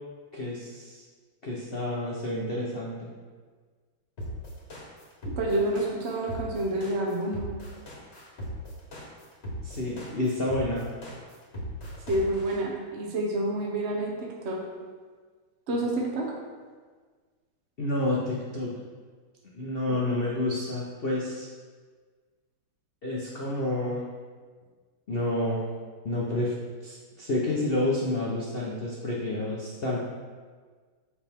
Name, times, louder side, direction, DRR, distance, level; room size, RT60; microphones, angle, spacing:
voice 1, 0.3-1.0 1.4-3.1 9.6-10.9 17.8-18.7 19.5-21.5 23.0-24.1 25.1-25.6 26.0-26.5 26.8-30.0, left 1 dB, 85° left, -4 dB, 0.5 m, -29 dB
sound 1, 4.2-12.6, equal, 35° left, 1.4 m, -38 dB
voice 2, 5.2-7.4 12.1-14.6 15.7-16.3 19.9-20.0, right 1 dB, 55° right, -2 dB, 0.8 m, -28 dB
7.2 x 4.9 x 3.5 m, 1.5 s
omnidirectional pair, 2.3 m